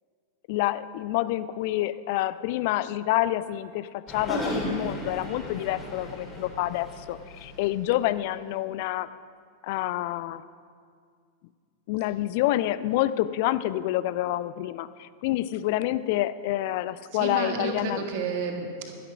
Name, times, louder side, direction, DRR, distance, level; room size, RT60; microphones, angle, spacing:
voice 1, 0.5-9.1 9.6-10.4 11.9-18.0, left 15 dB, 50° left, 16 dB, 0.4 m, -28 dB
sound 1, 4.1-7.8, equal, 15° left, 3.2 m, -35 dB
voice 2, 17.1-18.9, right 5 dB, 50° right, 3 dB, 1.7 m, -31 dB
11.5 x 11.0 x 6.1 m, 2.2 s
figure-of-eight pair, 90°, 0 cm